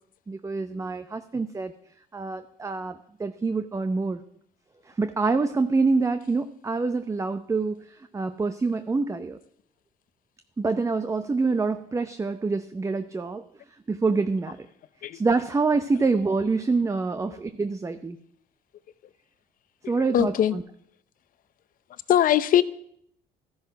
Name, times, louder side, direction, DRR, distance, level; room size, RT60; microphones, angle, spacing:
voice 1, 0.3-1.7 2.1-4.2 4.9-9.4 10.6-13.4 13.9-14.6 15.1-18.2 19.9-20.6, right 4 dB, 20° right, 0.6 m, -26 dB
voice 2, 19.8-20.6 22.1-22.6, left 10 dB, 55° left, 0.8 m, -21 dB
14.5 x 10.5 x 5.9 m
cardioid pair, 110°, 17 cm